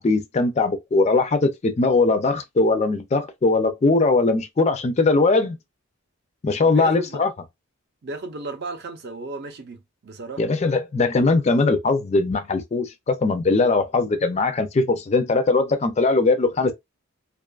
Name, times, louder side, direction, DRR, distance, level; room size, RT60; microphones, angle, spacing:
voice 1, 0.0-5.6 6.4-7.3 10.4-16.7, left 3 dB, 30° left, 0.3 m, -20 dB
voice 2, 6.6-7.2 8.0-10.4, right 2 dB, 50° right, 0.5 m, -34 dB
2.5 x 2.3 x 2.3 m
head